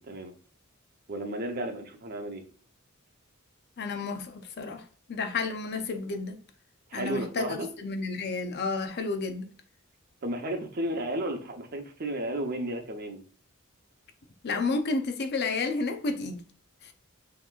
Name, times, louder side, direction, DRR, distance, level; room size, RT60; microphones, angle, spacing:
voice 1, 1.1-2.4 6.9-7.7 10.2-13.2, right 1 dB, 45° right, 0.7 m, -33 dB
voice 2, 3.8-4.8 5.1-6.4 6.9-9.5 14.4-16.4, left 3 dB, 50° left, 0.6 m, -31 dB
5.7 x 3.0 x 2.3 m
head